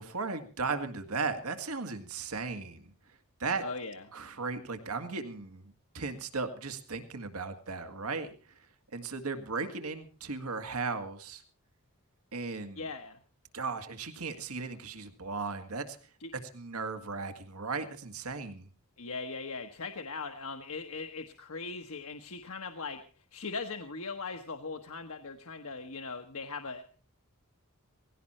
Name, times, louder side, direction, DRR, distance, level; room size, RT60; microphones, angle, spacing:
voice 1, 0.0-2.9 3.4-3.6 4.1-8.3 8.9-11.4 12.3-12.8 13.5-16.0 16.5-18.7, right 4 dB, 90° right, 7 dB, 2.0 m, -36 dB
voice 2, 3.6-4.0 12.7-13.2 16.2-16.3 19.0-26.8, left 4 dB, 70° left, 6 dB, 1.3 m, -40 dB
18.5 x 16.5 x 4.4 m, 0.38 s
head